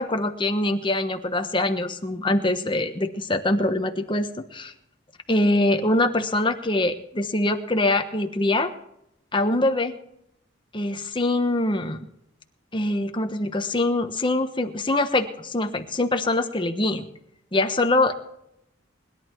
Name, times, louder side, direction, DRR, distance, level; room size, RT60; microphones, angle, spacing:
voice 1, 0.0-4.7 5.3-8.7 9.3-10.0 10.7-12.1 12.7-17.1 17.5-18.1, left 2 dB, 25° left, 6 dB, 1.2 m, -23 dB
21.0 x 11.5 x 4.6 m, 0.78 s
head